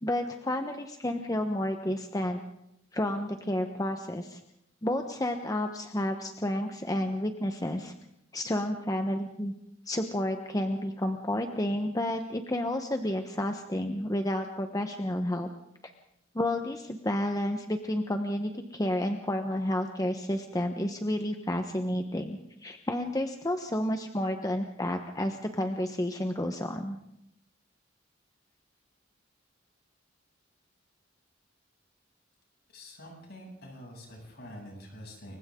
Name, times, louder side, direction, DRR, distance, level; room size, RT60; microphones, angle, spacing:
voice 1, 0.0-2.4 2.9-4.4 4.8-7.9 8.3-9.5 9.9-15.5 16.3-27.0, left 1 dB, 20° left, 5 dB, 1.1 m, -31 dB
voice 2, 32.7-35.4, equal, 55° left, 0 dB, 7.9 m, -46 dB
29.0 x 24.0 x 3.8 m, 0.80 s
head